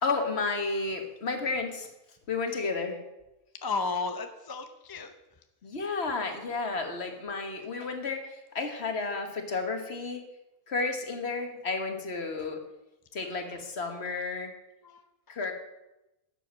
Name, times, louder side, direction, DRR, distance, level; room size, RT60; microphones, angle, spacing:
voice 1, 0.0-1.9 2.3-3.0 5.6-10.2 10.7-12.6 13.1-14.5 15.3-15.5, left 3 dB, 50° left, 5 dB, 1.6 m, -32 dB
voice 2, 3.6-5.1 14.8-15.4, left 4 dB, 25° left, 7 dB, 0.6 m, -34 dB
12.0 x 7.8 x 6.2 m, 0.97 s
omnidirectional pair, 1.5 m